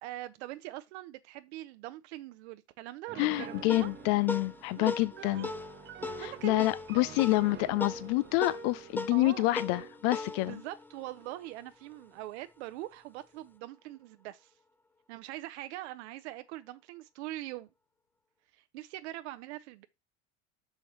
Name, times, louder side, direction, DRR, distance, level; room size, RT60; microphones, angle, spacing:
voice 1, 0.0-3.9 4.8-5.6 6.2-6.8 7.3-7.4 9.1-9.5 10.4-14.5 15.1-17.7 18.5-19.9, right 16 dB, 85° right, 0.7 m, -43 dB
Piano, 3.1-10.0, right 9 dB, 35° right, 0.9 m, -48 dB
voice 2, 3.2-5.5 6.2-10.6, left 19 dB, 70° left, 0.5 m, -28 dB
sound 1, 3.3-12.1, left 3 dB, 5° left, 0.3 m, -40 dB
6.3 x 5.6 x 3.1 m
supercardioid pair, 105°, 34 cm